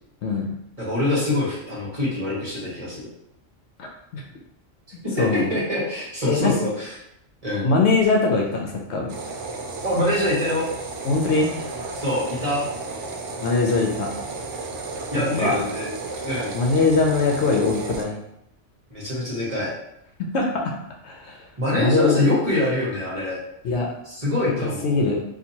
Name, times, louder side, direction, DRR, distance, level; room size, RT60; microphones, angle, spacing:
voice 1, 0.8-3.0 5.0-6.9 7.4-7.7 9.8-10.7 11.9-12.7 15.1-15.9 16.2-16.5 18.9-19.7 21.6-23.4 24.0-25.0, left 1 dB, 30° right, -7 dB, 1.2 m, -24 dB
voice 2, 3.8-4.2 5.2-5.5 6.3-6.5 7.6-9.1 11.0-11.5 13.4-14.1 15.4-15.6 16.5-18.2 20.3-20.6 21.0-21.4 21.8-22.3 23.6-23.9 24.8-25.2, left 3 dB, 70° left, 1 dB, 0.8 m, -21 dB
sound 1, 9.1-18.0, right 3 dB, 75° right, 0.9 m, -33 dB
4.3 x 2.5 x 2.8 m, 0.79 s
omnidirectional pair, 1.3 m